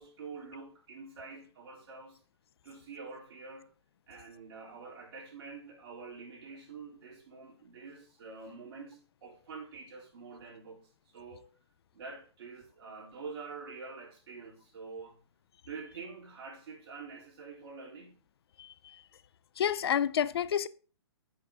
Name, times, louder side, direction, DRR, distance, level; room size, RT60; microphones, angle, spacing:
voice 1, 0.0-2.2 2.6-3.7 4.1-11.5 11.9-15.2 15.6-18.2, right 4 dB, 55° right, 3.7 m, -46 dB
voice 2, 18.6-19.0 19.6-20.7, left 9 dB, 60° left, 0.4 m, -30 dB
7.8 x 6.6 x 3.7 m
hypercardioid pair, 155°, 15 cm